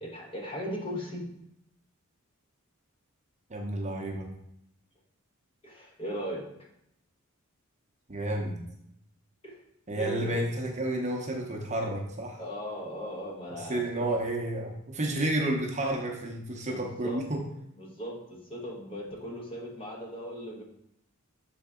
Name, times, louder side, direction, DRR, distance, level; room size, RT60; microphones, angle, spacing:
voice 1, 0.0-1.2 5.6-6.4 9.4-9.6 9.9-10.4 12.4-14.1 16.6-17.2 17.8-20.6, equal, 25° left, -1 dB, 1.2 m, -38 dB
voice 2, 3.5-4.3 8.1-8.6 9.9-12.4 13.7-17.4, right 1 dB, 35° right, 0 dB, 0.8 m, -31 dB
6.8 x 3.9 x 3.7 m, 0.77 s
head